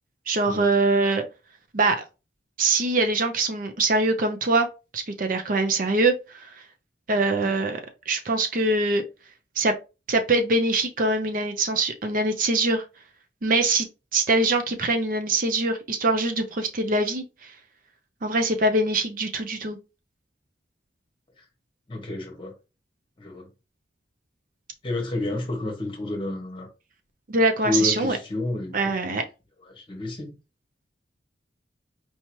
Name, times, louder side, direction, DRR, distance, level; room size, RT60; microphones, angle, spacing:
voice 1, 0.3-1.2 1.7-2.0 2.6-4.7 4.9-6.5 7.1-7.8 8.1-9.0 9.6-9.7 10.1-12.8 13.4-13.9 14.1-17.5 18.2-19.8 27.3-28.2 28.7-29.2, right 2 dB, 45° right, 0.6 m, -23 dB
voice 2, 21.9-22.5 23.2-23.5 24.8-26.7 27.6-29.2 29.7-30.3, left 2 dB, 25° left, 1.3 m, -30 dB
4.6 x 2.8 x 3.0 m
head